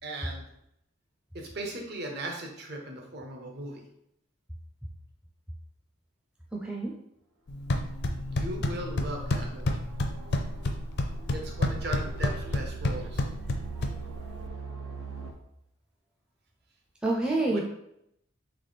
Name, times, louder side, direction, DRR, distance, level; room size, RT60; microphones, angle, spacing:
voice 1, 0.0-0.4 1.3-3.8 8.3-9.8 11.3-13.2 17.5-17.6, right 1 dB, 50° right, 1 dB, 0.9 m, -38 dB
voice 2, 6.5-6.9 13.7-13.8 17.0-17.6, right 2 dB, 5° right, -3 dB, 0.5 m, -28 dB
sound 1, 7.5-14.5, left 1 dB, 50° left, 0.5 m, -30 dB
sound 2, 8.1-15.3, right 5 dB, 85° right, 0.8 m, -43 dB
3.4 x 3.4 x 4.1 m, 0.78 s
head